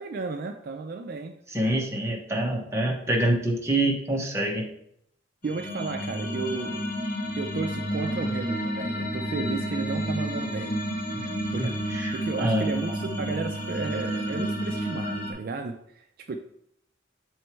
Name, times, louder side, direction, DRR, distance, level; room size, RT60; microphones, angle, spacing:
voice 1, 0.0-1.4 5.4-6.8 7.4-10.7 11.5-16.4, right 4 dB, 50° right, 5 dB, 0.4 m, -33 dB
voice 2, 1.5-4.7 11.1-11.3 11.6-12.7, right 1 dB, 15° right, -1 dB, 1.0 m, -26 dB
sound 1, 5.4-15.3, equal, 45° left, 1.1 m, -30 dB
6.8 x 3.2 x 4.4 m, 0.72 s
head